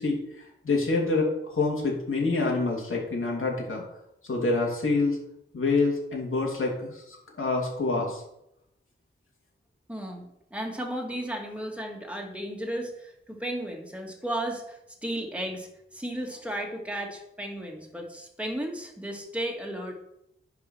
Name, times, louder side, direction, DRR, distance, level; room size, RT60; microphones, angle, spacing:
voice 1, 0.0-3.8 4.3-5.2 5.5-8.2, left 3 dB, 75° left, -2 dB, 2.7 m, -27 dB
voice 2, 9.9-19.9, right 1 dB, 5° right, 0 dB, 2.1 m, -34 dB
10.5 x 4.9 x 6.2 m, 0.79 s
wide cardioid pair, 85°, 21 cm